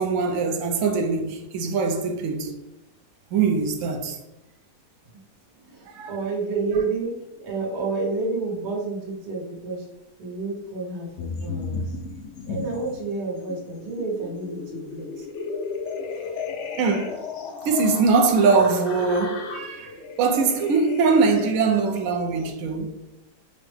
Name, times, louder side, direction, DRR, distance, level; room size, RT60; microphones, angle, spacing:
voice 1, 0.0-2.5 3.3-4.2 5.9-6.2 16.8-17.2 17.6-23.0, right 4 dB, 65° right, 0.9 m, -22 dB
voice 2, 5.6-9.9 10.2-11.8 12.5-15.3, right 3 dB, 85° right, 1.7 m, -30 dB
sound 1, 11.2-13.1 13.5-22.5, left 5 dB, 85° left, 0.6 m, -35 dB
5.6 x 2.0 x 3.2 m
omnidirectional pair, 1.7 m